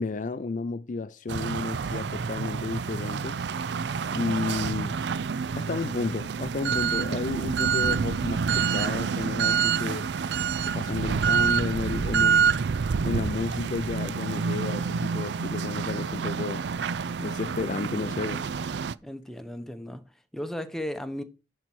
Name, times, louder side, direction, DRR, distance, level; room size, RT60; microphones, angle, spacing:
voice 1, 0.0-3.4 4.1-5.0 5.6-10.1 10.6-12.6 13.0-16.7 17.2-18.5, left 3 dB, 45° left, 0.4 m, -32 dB
sound 1, 1.3-18.9, right 6 dB, 70° right, 0.4 m, -27 dB
voice 2, 19.0-20.0 20.3-21.2, left 1 dB, ahead, 0.9 m, -35 dB
11.0 x 4.4 x 6.2 m
head